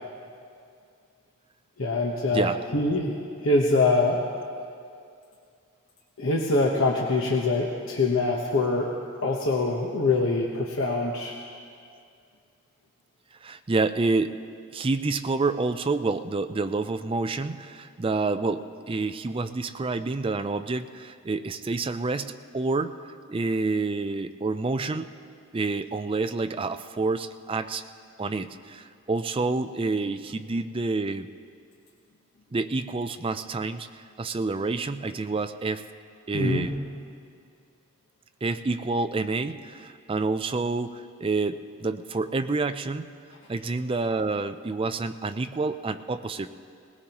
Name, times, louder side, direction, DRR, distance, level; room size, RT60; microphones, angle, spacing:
voice 1, 1.8-4.2 6.2-8.9 9.2-11.4 36.3-36.7, left 2 dB, 65° left, -1 dB, 1.0 m, -24 dB
voice 2, 13.4-14.4 14.7-23.0 23.3-25.1 25.5-27.8 28.2-31.3 32.5-33.9 34.2-35.8 36.3-36.7 38.4-43.1 43.5-46.5, right 3 dB, 25° right, 9 dB, 0.4 m, -28 dB
20.0 x 19.0 x 3.0 m, 2.4 s
head